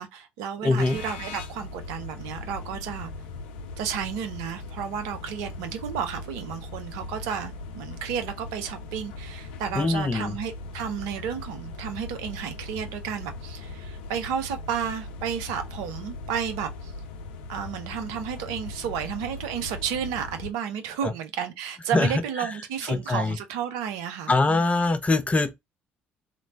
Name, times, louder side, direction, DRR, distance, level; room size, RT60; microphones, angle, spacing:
voice 1, 0.0-3.1 3.8-16.9 17.5-24.6, right 8 dB, 70° right, 0.5 m, -32 dB
voice 2, 0.6-1.0 9.7-10.4 21.0-21.1 21.9-22.5 22.9-23.4 24.3-25.5, left 3 dB, 25° left, 0.5 m, -23 dB
sound 1, 0.8-20.5, left 3 dB, 75° left, 0.4 m, -39 dB
3.0 x 2.1 x 2.5 m
figure-of-eight pair, 50°, 6 cm